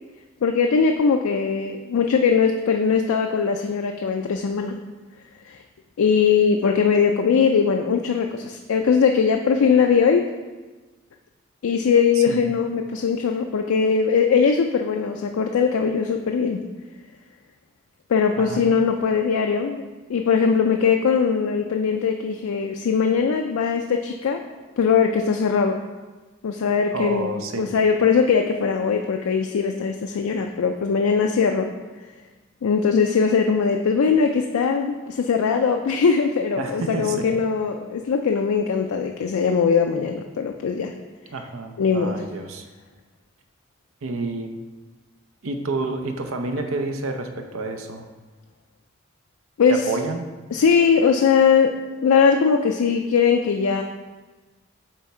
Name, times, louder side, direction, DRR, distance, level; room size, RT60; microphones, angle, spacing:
voice 1, 0.4-4.8 5.5-5.6 6.0-10.3 11.6-16.6 18.1-19.8 20.1-24.4 24.8-25.8 26.4-27.3 27.6-31.7 32.6-40.9 41.8-42.2 49.6-49.9 50.5-53.8, left 6 dB, 90° left, 4 dB, 0.4 m, -20 dB
voice 2, 26.9-27.7 36.6-37.3 41.3-42.7 44.0-44.6 45.4-48.1 49.7-50.3, right 3 dB, 80° right, 5 dB, 0.6 m, -29 dB
7.3 x 3.4 x 4.2 m, 1.3 s
head